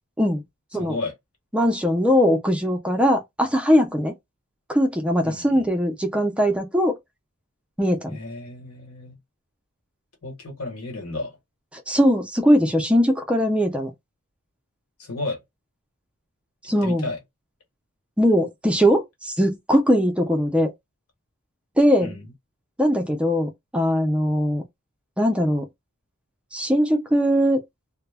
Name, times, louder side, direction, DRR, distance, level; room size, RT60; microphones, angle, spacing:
voice 1, 0.7-1.1 5.2-5.7 8.0-9.2 10.2-11.4 15.0-15.4 16.6-17.2 22.0-22.3, left 2 dB, 75° left, 1.1 m, -33 dB
voice 2, 1.5-4.1 4.7-7.0 7.8-8.2 11.7-13.9 16.6-17.1 18.2-20.7 21.8-22.1 22.8-24.6 25.2-25.7 26.5-27.6, equal, 5° right, 0.3 m, -20 dB
2.0 x 2.0 x 3.3 m
head